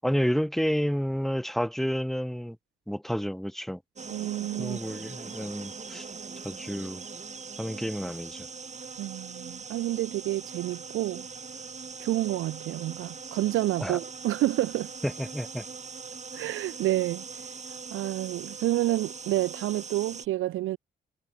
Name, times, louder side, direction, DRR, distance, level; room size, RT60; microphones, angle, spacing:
voice 1, 0.0-2.6 2.9-3.8 4.6-6.1 6.4-7.0 7.6-8.5 13.8-14.0 15.0-15.6, equal, ahead, 6.3 m, -30 dB
sound 1, 4.0-20.3, right 5 dB, 35° right, 7.4 m, -41 dB
voice 2, 4.1-4.8 9.0-11.3 12.0-14.9 16.3-17.2 17.9-20.8, right 15 dB, 90° right, 3.9 m, -29 dB
cardioid pair, 90°, 20 cm